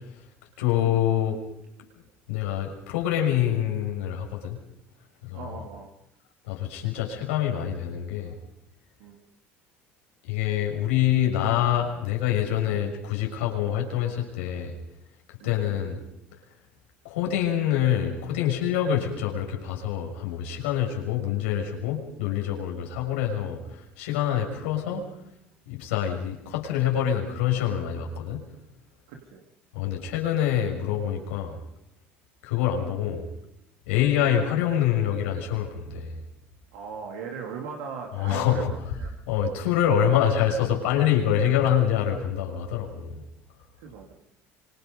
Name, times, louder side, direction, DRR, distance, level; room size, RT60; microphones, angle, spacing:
voice 1, 0.6-1.4 2.3-4.6 5.2-5.6 6.4-8.3 10.3-14.7 15.4-16.0 17.0-25.0 25.7-28.4 29.7-31.6 32.4-33.2 33.9-36.2 38.1-38.7 39.3-43.2, left 10 dB, 75° left, 0 dB, 6.1 m, -26 dB
voice 2, 5.3-5.9 9.0-9.2 15.4-15.6 29.1-29.4 36.7-39.1 43.8-44.1, right 5 dB, 70° right, 1 dB, 3.0 m, -38 dB
26.0 x 26.0 x 5.4 m, 0.80 s
hypercardioid pair, 65°, 6 cm